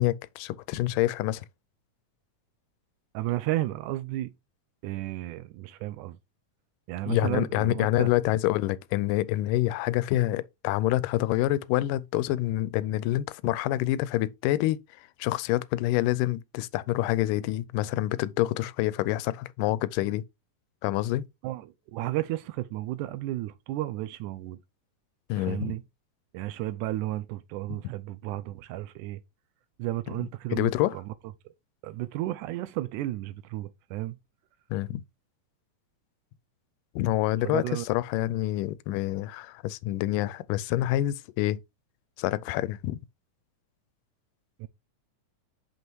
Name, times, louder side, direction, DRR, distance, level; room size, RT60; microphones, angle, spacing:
voice 1, 0.0-1.5 7.1-20.2 20.8-21.2 25.3-25.7 30.5-31.0 34.7-35.0 37.0-41.6 42.2-43.0, left 15 dB, 90° left, 2.2 m, -27 dB
voice 2, 3.1-4.3 4.8-6.2 6.9-8.1 21.4-24.6 25.4-25.8 26.3-29.2 29.8-31.1 31.8-34.2 37.4-37.9 44.6-44.7, right 16 dB, 80° right, 1.9 m, -33 dB
5.8 x 5.5 x 4.6 m
omnidirectional pair, 3.7 m